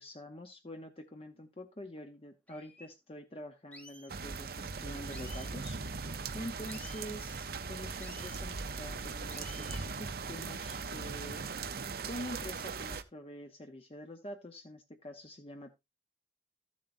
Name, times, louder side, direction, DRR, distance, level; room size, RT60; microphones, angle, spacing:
voice 1, 0.0-5.8 6.3-11.4 12.0-15.7, equal, 30° left, 5 dB, 0.8 m, -46 dB
sound 1, 2.0-2.1 2.5-2.9 3.7-4.1 5.1-5.5 6.7-7.1 8.0-8.4 9.3-9.8, left 1 dB, 5° left, 1.0 m, -52 dB
sound 2, 4.1-13.0, right 4 dB, 50° right, 0.7 m, -39 dB
14.0 x 7.3 x 2.6 m, 0.22 s
head